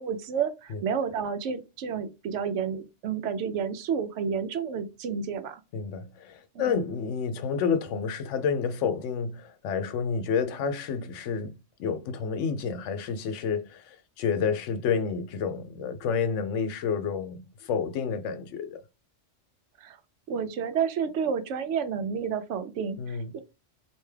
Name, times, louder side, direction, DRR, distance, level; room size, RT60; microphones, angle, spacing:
voice 1, 0.0-5.6 6.5-6.7 19.8-20.0 20.3-23.4, right 7 dB, 80° right, 0.9 m, -30 dB
voice 2, 5.7-11.5 11.8-18.8 23.0-23.3, left 6 dB, 90° left, 0.9 m, -29 dB
3.4 x 2.7 x 3.2 m
omnidirectional pair, 1.2 m